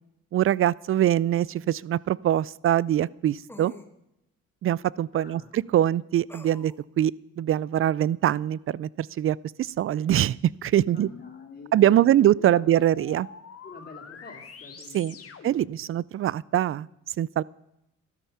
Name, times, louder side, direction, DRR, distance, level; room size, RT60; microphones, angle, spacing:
voice 1, 0.3-3.7 4.6-11.1 11.7-13.3 14.9-15.1 15.4-16.9 17.2-17.4, right 12 dB, 45° right, 24 dB, 0.4 m, -23 dB
sound 1, 1.2-1.3 3.5-3.9 6.3-6.8, left 2 dB, 5° left, 1.2 m, -46 dB
voice 2, 5.1-5.5 10.8-12.2 12.5-12.6 13.6-15.3 15.7-15.8, left 3 dB, 35° left, -6 dB, 3.1 m, -47 dB
noise sweep, 10.8-15.8, left 6 dB, 50° left, 1.7 m, -46 dB
13.0 x 12.5 x 5.6 m, 0.86 s
cardioid pair, 90°, 30 cm